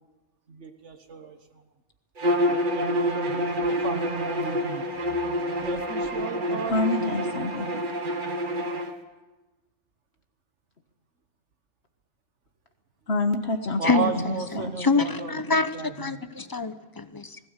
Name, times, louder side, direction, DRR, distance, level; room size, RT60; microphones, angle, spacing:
voice 1, 0.5-1.6 2.7-4.9 5.6-6.7 7.0-7.3 13.8-16.2, right 4 dB, 80° right, 6 dB, 1.7 m, -34 dB
Bowed string instrument, 2.2-8.9, equal, 45° right, 1.7 m, -27 dB
voice 2, 6.7-7.8 13.1-14.2 14.5-14.7, left 2 dB, 65° left, 5 dB, 1.7 m, -27 dB
voice 3, 13.8-14.1 14.8-15.7 16.0-17.4, left 4 dB, 20° left, 11 dB, 0.8 m, -25 dB
20.0 x 16.5 x 8.2 m, 1.1 s
omnidirectional pair, 1.2 m